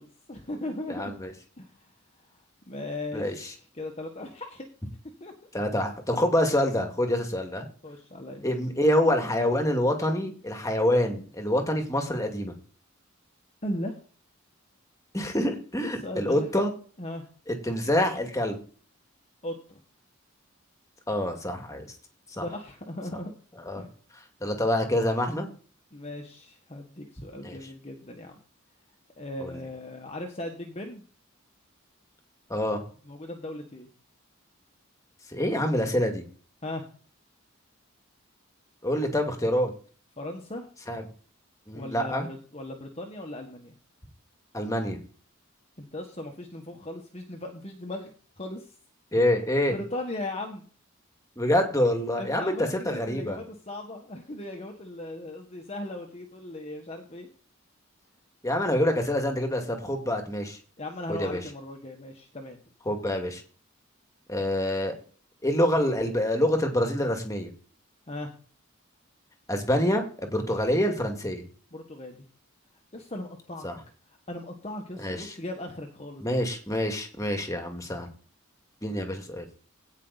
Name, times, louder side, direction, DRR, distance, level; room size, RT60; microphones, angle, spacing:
voice 1, 0.0-1.1 1.6-1.9 2.7-4.7 5.2-5.3 7.8-8.4 13.6-14.0 15.8-16.5 17.0-17.2 19.4-19.8 22.3-23.3 23.8-23.9 25.9-28.4 29.2-31.0 33.0-33.9 36.6-36.9 40.2-40.7 41.7-43.7 45.8-48.7 49.7-50.7 52.2-57.3 60.8-62.6 68.1-68.3 71.7-72.2 72.9-73.7 74.3-76.4, left 1 dB, 30° left, 2 dB, 1.5 m, -38 dB
voice 2, 0.9-1.3 3.1-3.5 5.5-7.7 8.4-12.5 15.1-16.7 17.5-18.6 21.1-21.9 22.3-22.5 23.7-23.9 24.4-25.5 27.4-27.6 29.4-29.6 32.5-32.8 35.3-36.2 38.8-39.7 40.9-41.0 41.7-42.3 44.5-45.0 49.1-49.7 51.4-52.5 52.9-53.4 58.4-60.6 61.1-61.4 62.9-63.4 64.3-65.0 65.4-67.5 69.5-71.4 73.6-73.8 75.0-75.3 76.2-78.1 78.8-79.5, left 1 dB, 15° left, 4 dB, 2.1 m, -26 dB
17.0 x 5.8 x 4.1 m, 0.40 s
head